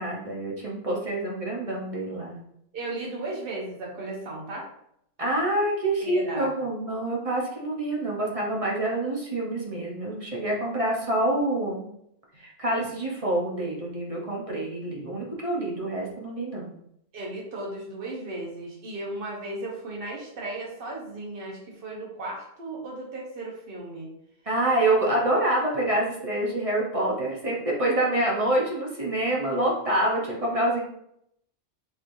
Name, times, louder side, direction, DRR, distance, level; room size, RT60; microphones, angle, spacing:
voice 1, 0.0-2.4 5.2-11.9 12.4-16.7 24.5-30.8, right 1 dB, 35° right, -3 dB, 0.8 m, -26 dB
voice 2, 2.7-4.7 6.0-6.5 17.1-24.1, right 2 dB, 55° right, -3 dB, 1.1 m, -35 dB
4.4 x 3.1 x 2.6 m, 0.73 s
omnidirectional pair, 1.2 m